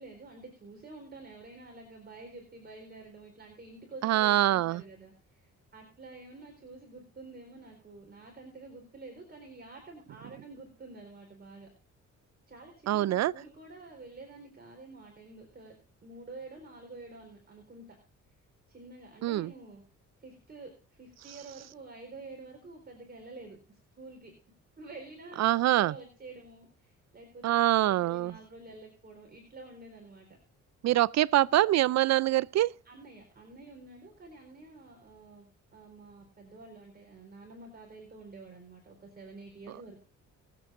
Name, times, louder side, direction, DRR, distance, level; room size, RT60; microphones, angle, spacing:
voice 1, 0.0-11.7 12.5-15.8 16.0-18.0 18.7-19.8 20.2-24.3 24.8-27.6 27.8-30.4 32.8-40.0, right 3 dB, 35° right, 4.4 m, -49 dB
voice 2, 4.0-4.8 12.9-13.3 19.2-19.5 25.4-25.9 27.4-28.3 30.8-32.7, right 14 dB, 60° right, 0.4 m, -24 dB
22.5 x 8.5 x 2.5 m
cardioid pair, 90°, 30 cm